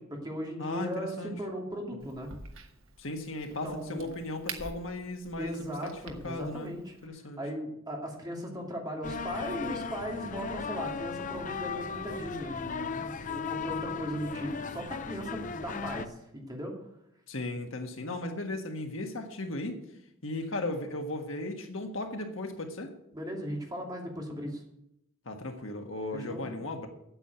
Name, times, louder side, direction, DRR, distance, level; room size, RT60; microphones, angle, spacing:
voice 1, 0.0-2.3 3.6-4.1 5.4-6.9 7.4-16.7 23.1-24.6 26.1-26.5, equal, 20° right, 0 dB, 2.6 m, -37 dB
voice 2, 0.6-1.3 3.0-6.7 7.0-7.4 17.3-19.8 20.2-22.9 25.2-26.9, left 2 dB, 70° left, 4 dB, 1.6 m, -36 dB
Crack, 2.0-7.1, right 4 dB, 75° right, 1.4 m, -47 dB
sound 1, 9.0-16.1, left 5 dB, 40° left, 0.6 m, -36 dB
8.8 x 8.4 x 7.9 m, 0.80 s
head